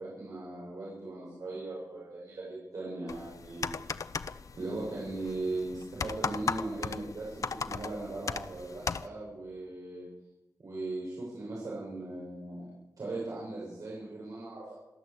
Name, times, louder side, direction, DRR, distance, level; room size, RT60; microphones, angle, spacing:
voice 1, 0.0-3.7 4.5-10.1 10.6-12.7 13.0-14.7, right 2 dB, 60° right, -5 dB, 7.0 m, -38 dB
sound 1, 3.1-9.1, left 5 dB, 60° left, 0.8 m, -37 dB
27.0 x 11.5 x 8.3 m, 1.0 s
wide cardioid pair, 140°, 6 cm